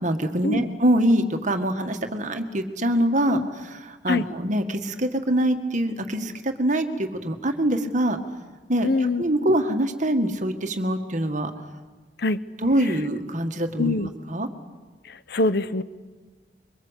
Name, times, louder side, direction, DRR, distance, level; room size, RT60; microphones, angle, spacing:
voice 1, 0.0-8.2 8.7-11.5 12.6-14.5, right 1 dB, 45° right, 7 dB, 1.9 m, -24 dB
voice 2, 8.8-9.2 12.2-12.4 13.8-14.1 15.1-15.8, left 2 dB, 60° left, 14 dB, 0.9 m, -24 dB
25.0 x 23.5 x 8.3 m, 1.4 s
head